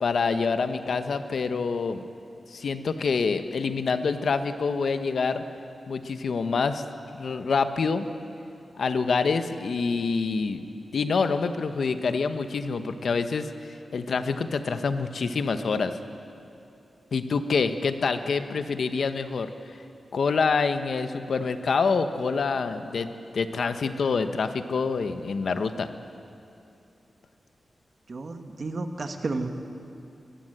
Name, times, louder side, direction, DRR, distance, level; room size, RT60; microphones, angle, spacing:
voice 1, 0.0-2.0 2.5-5.4 5.9-6.8 7.2-8.1 8.8-10.6 10.9-13.5 13.9-16.0 17.1-19.5 20.1-25.9, left 4 dB, 65° left, 9 dB, 1.0 m, -26 dB
voice 2, 28.1-29.5, right 3 dB, 40° right, 6 dB, 1.4 m, -32 dB
23.5 x 15.0 x 7.9 m, 2.7 s
wide cardioid pair, 170°, 0 cm